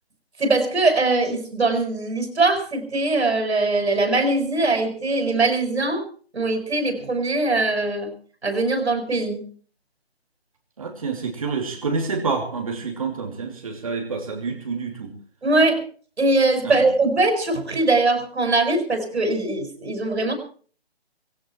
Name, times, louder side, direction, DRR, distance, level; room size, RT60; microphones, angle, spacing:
voice 1, 0.4-6.0 6.3-8.1 8.4-9.5 15.4-15.8 16.2-20.3, right 2 dB, 80° right, 5 dB, 6.4 m, -21 dB
voice 2, 10.8-15.1 16.6-16.8, right 4 dB, 35° right, 2 dB, 2.9 m, -28 dB
18.5 x 16.0 x 4.6 m, 0.43 s
hypercardioid pair, 175°, 32 cm